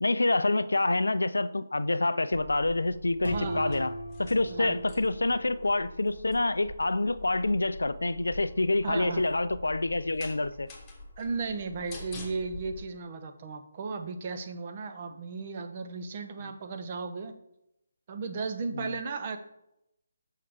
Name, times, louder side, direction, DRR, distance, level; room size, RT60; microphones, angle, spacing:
voice 1, 0.0-10.7 16.4-16.5 18.7-19.0, left 2 dB, 80° left, 15 dB, 0.4 m, -27 dB
sound 1, 2.3-12.8, left 2 dB, 20° left, 1.2 m, -46 dB
voice 2, 3.2-3.8 4.5-4.8 8.8-9.2 11.2-17.3 18.1-19.4, right 4 dB, 40° right, 7 dB, 0.8 m, -35 dB
sound 2, 3.2-6.0, equal, 85° right, 1.8 m, -39 dB
6.5 x 5.5 x 3.6 m, 0.82 s
figure-of-eight pair, 150°, 0 cm